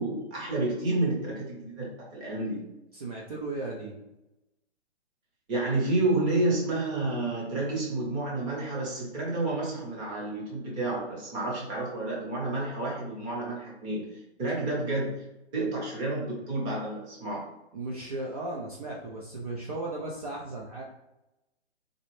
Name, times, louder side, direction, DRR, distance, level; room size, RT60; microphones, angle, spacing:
voice 1, 0.0-2.6 5.5-14.1 14.4-15.2 15.5-17.4, right 2 dB, 15° right, -3 dB, 0.9 m, -30 dB
voice 2, 2.9-4.0 17.7-20.8, right 2 dB, 35° right, -2 dB, 0.6 m, -36 dB
4.1 x 4.0 x 3.2 m, 0.93 s
hypercardioid pair, 160°, 34 cm